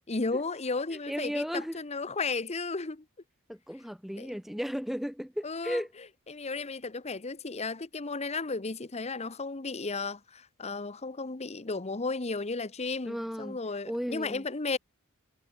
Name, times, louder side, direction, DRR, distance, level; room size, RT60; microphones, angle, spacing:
voice 1, 0.1-3.0 4.2-4.4 5.4-5.8 6.3-14.8, left 3 dB, 30° left, 1.0 m, -34 dB
voice 2, 1.1-1.8 3.5-5.9 13.0-13.6 13.9-14.4, equal, ahead, 0.6 m, -34 dB
head